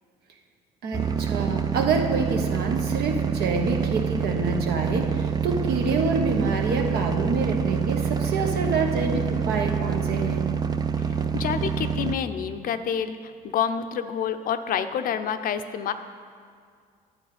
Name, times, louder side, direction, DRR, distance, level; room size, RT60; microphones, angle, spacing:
voice 1, 0.8-10.5, right 4 dB, 70° right, 3 dB, 1.3 m, -27 dB
sound 1, 0.9-12.2, right 7 dB, 25° right, 0.4 m, -26 dB
voice 2, 11.3-13.2 13.5-15.9, left 8 dB, 55° left, 9 dB, 0.6 m, -27 dB
10.5 x 7.4 x 5.0 m, 2.1 s
cardioid pair, 110°, 17 cm